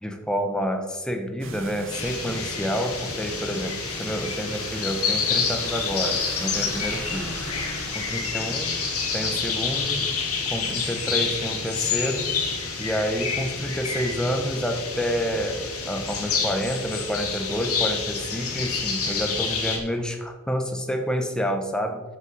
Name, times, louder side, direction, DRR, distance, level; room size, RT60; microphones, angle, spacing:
voice 1, 0.0-7.4 7.9-8.8 9.1-10.1 10.5-12.3 12.8-22.0, equal, 5° left, 4 dB, 0.9 m, -29 dB
sound 1, 1.4-10.3, right 3 dB, 60° right, 1.1 m, -41 dB
sound 2, 1.9-19.8, left 5 dB, 90° left, 2.1 m, -28 dB
9.0 x 7.0 x 4.9 m, 1.3 s
head